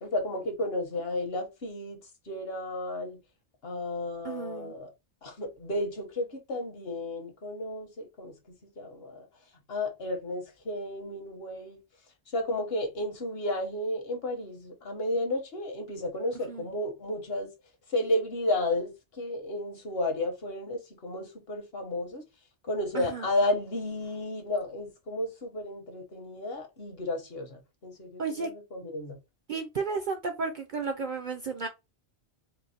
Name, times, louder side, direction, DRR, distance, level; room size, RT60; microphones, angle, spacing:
voice 1, 0.0-3.2 3.6-4.9 5.2-9.3 9.7-11.8 12.3-17.5 17.9-22.2 22.7-29.2, left 1 dB, 60° left, 1.4 m, -33 dB
voice 2, 4.2-4.7 16.5-16.7 22.9-23.3 28.2-28.5 29.5-31.7, right 4 dB, 55° right, 0.6 m, -33 dB
4.5 x 2.1 x 4.2 m
omnidirectional pair, 1.2 m